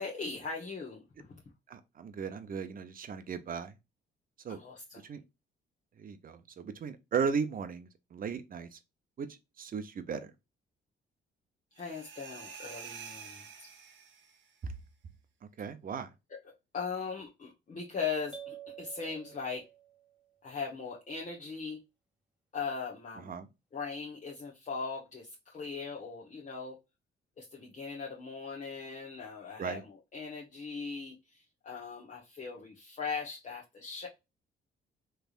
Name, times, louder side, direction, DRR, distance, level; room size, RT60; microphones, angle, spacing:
voice 1, 0.0-1.4 4.5-5.0 11.7-13.7 16.7-19.7 20.4-21.8 22.5-23.3 23.7-26.8 27.4-34.1, left 5 dB, 40° left, 1.2 m, -39 dB
voice 2, 1.7-3.7 4.4-4.6 5.0-5.2 6.0-8.8 9.2-10.2 14.6-14.7 15.6-16.1 23.2-23.5 29.6-29.8, right 6 dB, 45° right, 0.7 m, -36 dB
sound 1, 11.8-14.5, right 6 dB, 70° right, 0.9 m, -48 dB
sound 2, 18.3-20.2, right 7 dB, 5° right, 1.9 m, -49 dB
3.5 x 3.3 x 2.4 m
cardioid pair, 90°, 20 cm